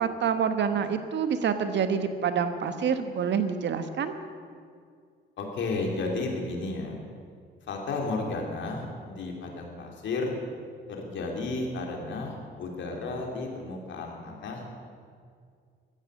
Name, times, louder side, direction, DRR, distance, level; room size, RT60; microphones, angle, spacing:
voice 1, 0.0-4.1, right 7 dB, 65° right, 9 dB, 1.3 m, -27 dB
voice 2, 5.4-7.0 7.6-10.3 10.9-14.8, left 3 dB, 70° left, 1 dB, 3.3 m, -33 dB
15.5 x 13.0 x 6.5 m, 2.2 s
cardioid pair, 90°, 20 cm